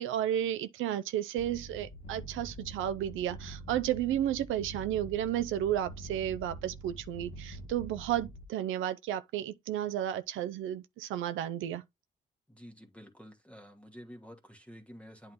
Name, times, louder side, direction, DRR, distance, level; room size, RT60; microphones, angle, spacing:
voice 1, 0.0-11.8, right 11 dB, 85° right, 0.5 m, -32 dB
sound 1, 1.4-8.4, right 1 dB, 40° left, 1.2 m, -45 dB
voice 2, 12.5-15.3, equal, 5° left, 1.4 m, -50 dB
8.7 x 3.1 x 3.8 m
cardioid pair, 90°, 20 cm